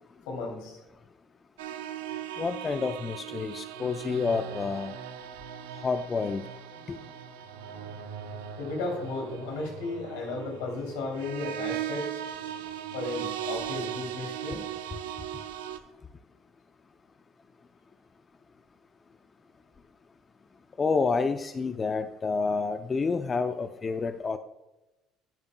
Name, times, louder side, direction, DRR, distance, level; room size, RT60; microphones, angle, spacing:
voice 1, 0.3-0.8 8.6-12.1 12.9-14.7, left 3 dB, 80° left, 1 dB, 3.0 m, -34 dB
sound 1, 1.6-15.8, right 10 dB, 85° right, 0.7 m, -38 dB
voice 2, 2.4-4.9 5.8-6.4 6.9-7.0 20.8-24.4, left 4 dB, 30° left, 9 dB, 0.5 m, -29 dB
10.5 x 10.5 x 2.3 m, 1.0 s
hypercardioid pair, 75°, 0 cm